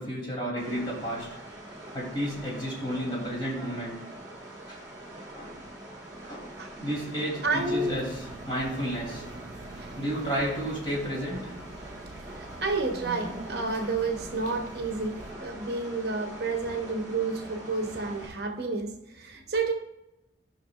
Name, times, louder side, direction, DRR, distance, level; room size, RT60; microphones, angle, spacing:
voice 1, 0.0-1.4 1.9-4.0 4.5-4.8 5.3-5.6 6.3-9.3 10.0-11.5, equal, 25° left, -4 dB, 2.9 m, -32 dB
sound 1, 0.6-18.3, right 1 dB, 20° right, 1.5 m, -44 dB
sound 2, 7.4-15.3, right 2 dB, 40° right, 0.5 m, -45 dB
voice 2, 7.4-8.0 9.7-10.0 12.4-19.7, right 3 dB, 55° right, 4 dB, 0.9 m, -30 dB
15.0 x 5.8 x 2.4 m, 0.94 s
head